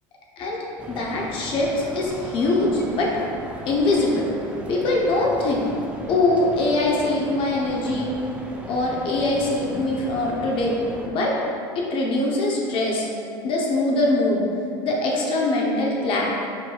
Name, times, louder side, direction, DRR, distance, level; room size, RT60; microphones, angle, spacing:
sound 1, 0.8-11.1, right 1 dB, 10° right, 0.5 m, -37 dB
voice 1, 0.9-3.1 3.7-4.3 4.7-5.7 6.1-8.2 8.7-10.8 11.0-11.3 11.7-13.1 13.4-14.4 14.8-16.2, left 2 dB, 50° left, -3 dB, 0.8 m, -22 dB
5.0 x 4.0 x 2.3 m, 2.5 s
supercardioid pair, 115°, 12 cm